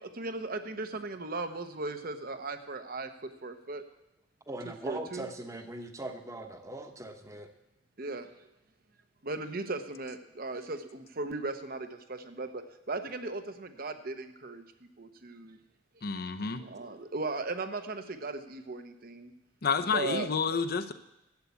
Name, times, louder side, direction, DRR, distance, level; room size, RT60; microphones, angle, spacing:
voice 1, 0.0-3.8 4.7-5.3 8.0-8.3 9.2-14.6 15.0-15.6 16.6-19.3 19.9-20.6, right 3 dB, 50° right, 9 dB, 1.0 m, -37 dB
voice 2, 4.5-7.5, right 1 dB, 15° right, 6 dB, 1.0 m, -40 dB
voice 3, 16.0-16.7 19.6-20.9, left 5 dB, 50° left, 11 dB, 0.7 m, -30 dB
11.5 x 8.2 x 8.4 m, 0.91 s
head